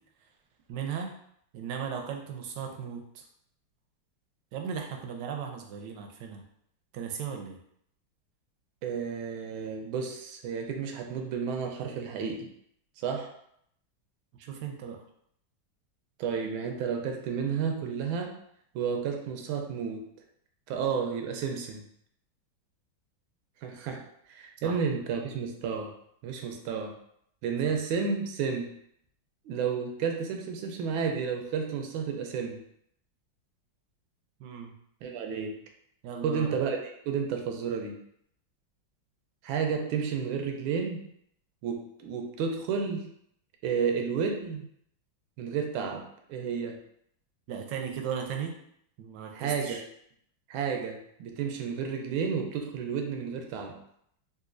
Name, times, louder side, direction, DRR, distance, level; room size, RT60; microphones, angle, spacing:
voice 1, 0.7-1.1 1.5-3.2 4.5-6.4 6.9-7.6 14.4-15.0 24.6-24.8 27.6-27.7 34.4-34.7 36.0-36.6 47.5-48.6 49.0-49.8, right 7 dB, 70° right, 2 dB, 1.1 m, -36 dB
voice 2, 8.8-12.5 13.0-13.3 16.2-18.4 18.7-20.0 20.7-21.8 23.6-24.0 24.3-25.9 26.2-26.9 27.4-28.7 29.4-32.6 35.0-35.6 36.2-38.0 39.4-41.0 41.6-43.1 43.6-44.6 45.4-46.8 49.3-49.8 50.5-53.8, right 6 dB, 85° right, 3 dB, 1.4 m, -31 dB
3.9 x 2.5 x 2.5 m, 0.70 s
omnidirectional pair, 2.2 m